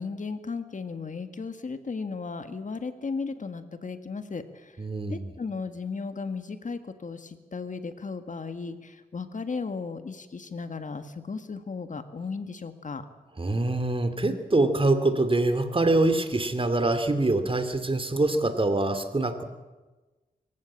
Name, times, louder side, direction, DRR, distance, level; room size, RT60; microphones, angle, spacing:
voice 1, 0.0-4.7 5.1-13.1, left 4 dB, 55° left, 9 dB, 1.7 m, -35 dB
voice 2, 4.8-5.3 13.4-19.4, right 2 dB, 35° right, 9 dB, 2.7 m, -24 dB
24.5 x 15.0 x 8.8 m, 1.2 s
cardioid pair, 65°, 16 cm